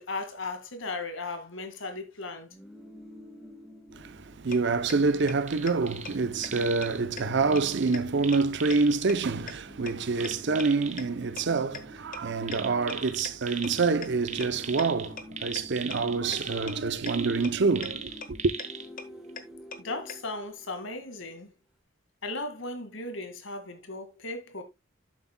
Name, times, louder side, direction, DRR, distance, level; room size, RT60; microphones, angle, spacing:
voice 1, 0.0-2.5 19.8-21.5 22.2-24.6, left 2 dB, 70° left, 2.0 m, -36 dB
sound 1, 2.4-5.0 5.3-5.4 5.7-9.1 9.6-13.2 13.5-21.1, left 1 dB, ahead, 1.2 m, -49 dB
voice 2, 3.9-18.5, right 4 dB, 60° right, 0.6 m, -27 dB
sound 2, 4.5-4.6 4.9-5.0 5.3-5.4 5.7-5.8 6.0-6.1 6.4-6.5 6.8-6.9 7.2-7.3 7.6-7.7 7.9-8.0 8.3-8.4 8.7-8.8 9.1-9.2 9.5-9.6 9.9-10.0 10.2-10.3 10.6-10.7 11.0-11.1 11.4-11.5 11.7-11.8 12.1-12.2 12.5-12.6 12.9-13.0 13.2-13.3 13.6-13.7 14.0-14.1 14.4-14.5 14.8-14.9 15.2-15.3 15.6-15.7 15.9-16.0 16.3-16.4 16.7-16.8 17.1-17.2 17.4-17.5 17.8-17.9 18.2-18.3 18.6-18.7 19.0-19.1 19.4-19.5 19.7-19.8 20.1-20.2, left 5 dB, 45° left, 1.1 m, -38 dB
sound 3, 5.4-6.2 6.5-7.0 7.5-9.0 10.2-11.0 12.4-13.9 14.2-18.9 19.3-19.4, right 7 dB, 35° right, 1.3 m, -39 dB
11.0 x 7.6 x 2.2 m
head